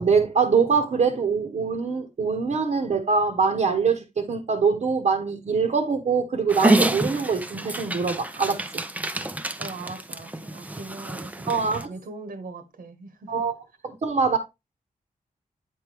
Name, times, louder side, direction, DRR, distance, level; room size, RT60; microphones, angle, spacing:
voice 1, 0.0-8.6 11.5-11.9 13.3-13.6 13.8-14.4, right 5 dB, 55° right, 1.0 m, -23 dB
Dog, 6.5-11.8, right 1 dB, 10° right, 0.5 m, -27 dB
voice 2, 9.6-13.5, right 3 dB, 85° right, 1.4 m, -40 dB
9.3 x 4.5 x 3.4 m
wide cardioid pair, 180°, 14 cm